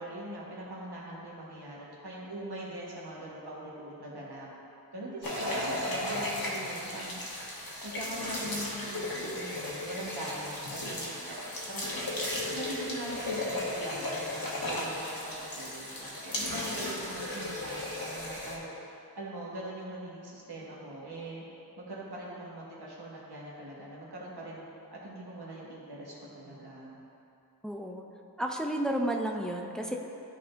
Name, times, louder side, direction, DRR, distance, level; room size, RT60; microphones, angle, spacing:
voice 1, 0.0-4.5 4.9-7.2 7.8-11.4 11.7-11.9 12.5-18.6 19.2-21.4 21.8-24.6 24.9-27.0, right 1 dB, 90° right, -6 dB, 1.3 m, -41 dB
sound 1, 5.2-18.6, left 1 dB, 65° left, 1.1 m, -35 dB
voice 2, 27.6-28.1 28.4-30.0, right 1 dB, ahead, 1 dB, 0.5 m, -32 dB
11.5 x 4.2 x 2.5 m, 2.8 s
wide cardioid pair, 45°, 38 cm